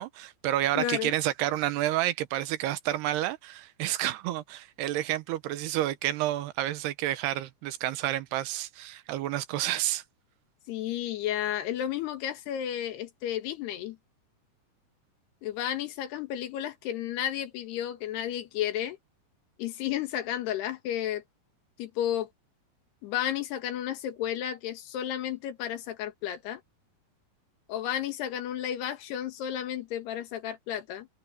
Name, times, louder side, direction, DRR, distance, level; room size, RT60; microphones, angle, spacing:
voice 1, 0.0-10.0, right 14 dB, 85° right, 3.1 m, -30 dB
voice 2, 0.8-1.1 10.7-14.0 15.4-19.0 19.6-21.2 21.8-22.3 23.0-26.6 27.7-31.1, left 11 dB, 80° left, 3.6 m, -32 dB
omnidirectional pair, 4.6 m